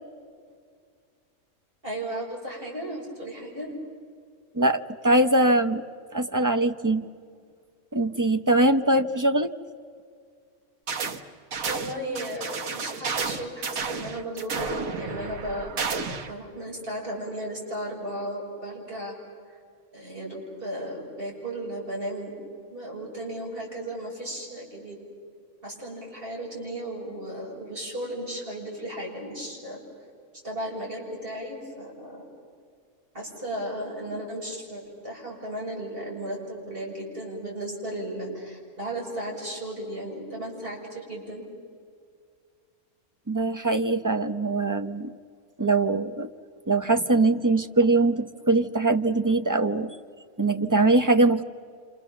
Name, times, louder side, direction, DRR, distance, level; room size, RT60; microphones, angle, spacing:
voice 1, 1.8-3.7 11.6-19.1 19.9-22.3 22.7-25.0 25.6-29.8 30.4-32.2 33.1-41.4, right 1 dB, 35° right, -3 dB, 7.3 m, -35 dB
voice 2, 4.5-5.8 6.1-7.1 7.9-9.5 43.3-45.1 45.6-46.3 46.7-49.9 50.4-51.4, right 2 dB, 20° right, 8 dB, 0.5 m, -22 dB
sound 1, 10.9-11.2 11.5-16.3, right 5 dB, 70° right, 1.7 m, -31 dB
29.5 x 27.5 x 7.2 m, 2.1 s
omnidirectional pair, 1.5 m